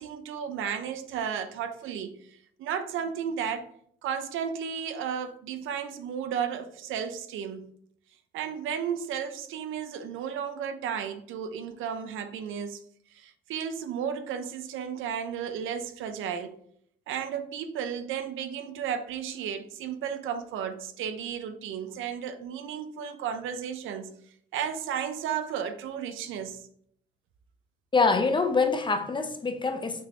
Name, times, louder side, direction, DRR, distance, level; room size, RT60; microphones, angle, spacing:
voice 1, 0.0-3.7 4.0-7.7 8.3-12.8 13.1-16.6 17.1-24.1 24.5-26.6, right 8 dB, 85° right, 0.5 m, -33 dB
voice 2, 27.9-30.1, left 4 dB, 25° left, 0.5 m, -25 dB
6.2 x 3.0 x 2.8 m
cardioid pair, 90°, 20 cm